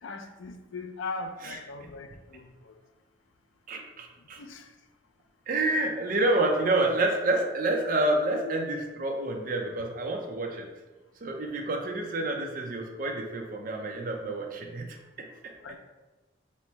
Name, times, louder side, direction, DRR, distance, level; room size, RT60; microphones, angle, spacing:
voice 1, 0.0-2.8 4.2-4.7 8.4-8.6 15.6-15.8, left 3 dB, 85° left, 7 dB, 0.4 m, -40 dB
voice 2, 1.4-1.9 3.7-4.4 5.5-10.7 11.2-15.3, right 2 dB, 45° right, 2 dB, 0.5 m, -28 dB
4.2 x 2.1 x 4.4 m, 1.2 s
head